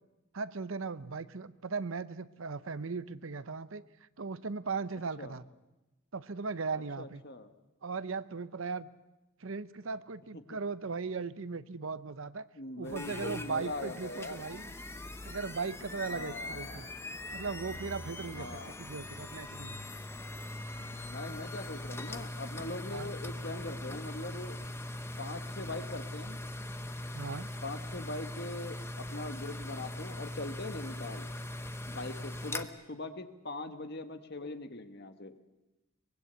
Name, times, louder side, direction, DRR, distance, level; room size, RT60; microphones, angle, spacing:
voice 1, 0.3-3.9 4.2-5.5 6.1-7.2 7.8-8.9 9.4-12.5 12.8-14.7 15.2-16.9 17.3-19.8 22.9-23.1 27.1-27.5, right 4 dB, 65° right, 15 dB, 0.7 m, -38 dB
voice 2, 7.0-7.5 12.5-14.5 16.1-16.9 18.3-18.8 21.0-24.6 25.2-26.4 27.6-31.3 31.9-35.3, left 2 dB, 50° left, 8 dB, 1.5 m, -41 dB
sound 1, 12.8-32.6, left 1 dB, 10° left, 0.8 m, -41 dB
23.5 x 20.5 x 8.1 m, 1.0 s
head